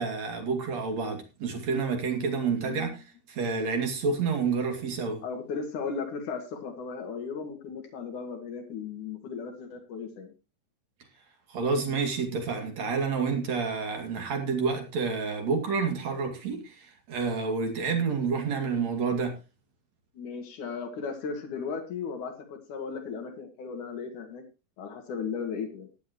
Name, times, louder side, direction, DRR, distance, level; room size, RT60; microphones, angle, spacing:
voice 1, 0.0-5.2 11.5-19.4, right 5 dB, 60° right, 3.6 m, -29 dB
voice 2, 2.6-2.9 5.2-10.3 20.1-24.4 24.8-25.9, left 5 dB, 75° left, 3.6 m, -36 dB
15.5 x 11.0 x 3.1 m
omnidirectional pair, 3.6 m